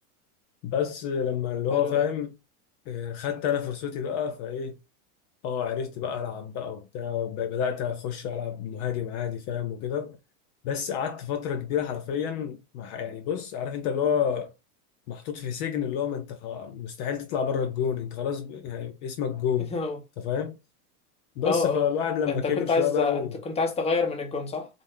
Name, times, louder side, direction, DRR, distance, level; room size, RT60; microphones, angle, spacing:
voice 1, 0.6-2.3 2.9-4.7 5.4-10.2 10.6-14.5 15.1-19.7 20.2-20.6 21.4-23.3, left 8 dB, 45° left, 0.6 m, -29 dB
voice 2, 1.7-2.0 19.7-20.0 21.4-21.8 22.3-24.7, left 4 dB, 15° left, 0.7 m, -27 dB
3.7 x 2.1 x 3.6 m
supercardioid pair, 130°, 45 cm